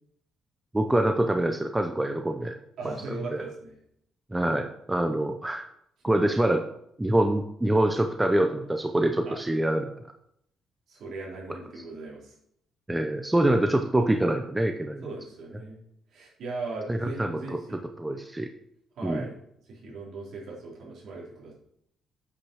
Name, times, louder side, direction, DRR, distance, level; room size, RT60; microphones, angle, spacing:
voice 1, 0.7-2.6 3.3-3.4 4.3-5.6 6.0-6.6 7.0-9.9 12.9-15.0 16.9-17.6 18.0-18.5 19.0-19.3, right 1 dB, 10° right, 5 dB, 0.6 m, -25 dB
voice 2, 2.8-3.8 9.2-9.4 10.9-12.3 15.0-15.8 16.1-17.8 19.0-19.4 19.6-21.5, right 3 dB, 65° right, -4 dB, 4.1 m, -38 dB
8.5 x 5.9 x 6.3 m, 0.72 s
cardioid pair, 155°, 0 cm